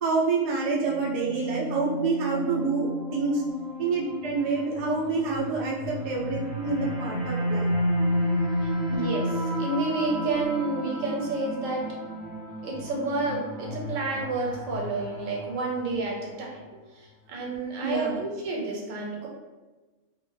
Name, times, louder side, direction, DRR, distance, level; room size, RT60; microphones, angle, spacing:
voice 1, 0.0-3.4 3.8-7.7 17.8-18.2, right 4 dB, 60° right, -4 dB, 0.4 m, -27 dB
sound 1, 0.7-16.1, equal, 20° right, 0.6 m, -32 dB
voice 2, 8.6-9.3 9.6-11.9 12.6-16.6 17.3-19.3, right 2 dB, 80° right, -1 dB, 1.0 m, -30 dB
2.4 x 2.1 x 3.1 m, 1.2 s
omnidirectional pair, 1.3 m